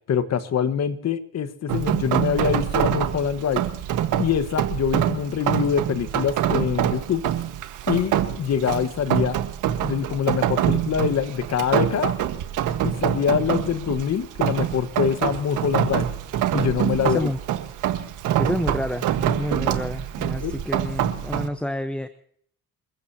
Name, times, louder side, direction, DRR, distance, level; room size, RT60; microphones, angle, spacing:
voice 1, 0.1-3.6 4.2-7.3 7.9-9.4 9.8-12.1 12.8-16.1 16.5-17.3 20.4-20.5, left 8 dB, 60° left, 11 dB, 1.5 m, -24 dB
Rain, 1.7-21.5, right 11 dB, 85° right, 1.5 m, -25 dB
voice 2, 17.0-17.4 18.4-22.1, left 1 dB, 5° left, 9 dB, 1.0 m, -29 dB
28.5 x 15.0 x 2.9 m, 0.64 s
cardioid pair, 90°, 30 cm